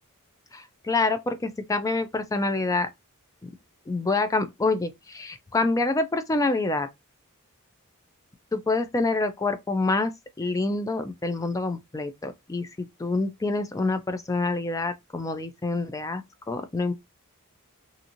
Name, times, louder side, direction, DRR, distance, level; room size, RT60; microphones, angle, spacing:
voice 1, 0.5-2.9 3.4-3.5 3.9-6.9 8.5-10.1 10.4-16.9, left 3 dB, 15° left, 0.3 m, -27 dB
2.8 x 2.6 x 2.5 m
head